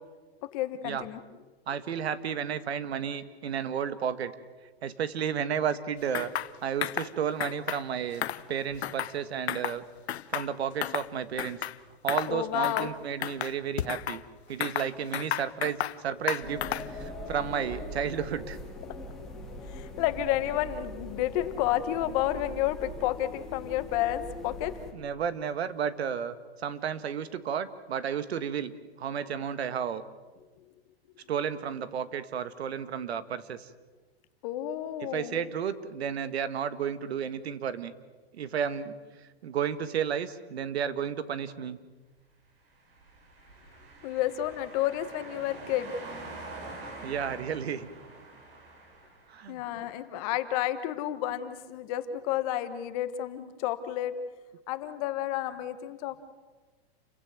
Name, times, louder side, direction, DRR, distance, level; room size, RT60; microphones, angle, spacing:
voice 1, 0.5-1.2 12.3-12.9 19.3-24.7 34.4-35.4 44.0-46.0 49.5-54.1 54.7-56.2, left 12 dB, 35° left, 11 dB, 1.4 m, -31 dB
voice 2, 1.7-4.3 4.8-6.3 6.6-9.8 10.3-11.6 12.0-14.2 14.5-18.6 24.9-28.7 29.0-30.0 31.3-33.7 35.0-37.9 38.3-38.9 39.4-41.8 46.8-47.9 49.3-49.6, right 8 dB, 80° right, 13 dB, 1.7 m, -32 dB
sound 1, 6.1-6.5 6.8-7.1 7.4-7.8 8.1-9.2 9.5-9.8 10.1-11.1 11.4-11.8 12.1-12.3 12.6-12.9 13.2-14.2 14.6-16.0 16.3-17.0, left 11 dB, 85° left, 0.9 m, -32 dB
sound 2, 16.4-24.9, left 2 dB, ahead, 3.4 m, -41 dB
sound 3, 42.8-49.5, right 2 dB, 60° right, 7.0 m, -45 dB
29.0 x 16.0 x 7.8 m, 1.3 s
hypercardioid pair, 155°, 31 cm